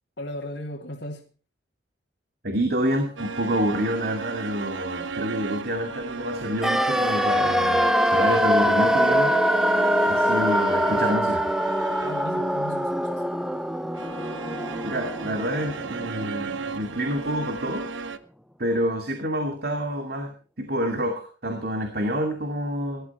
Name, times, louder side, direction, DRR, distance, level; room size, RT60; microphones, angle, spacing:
voice 1, 0.2-1.3 12.0-13.2, left 1 dB, 65° left, 2.1 m, -36 dB
voice 2, 2.4-9.6 10.1-11.5 14.8-18.1 18.6-23.1, equal, 55° right, 2.4 m, -28 dB
sound 1, 3.2-12.4 13.9-18.2, right 4 dB, 85° right, 1.1 m, -35 dB
sound 2, 6.6-16.6 16.8-16.9, equal, 5° right, 0.6 m, -23 dB
18.5 x 12.5 x 4.4 m
head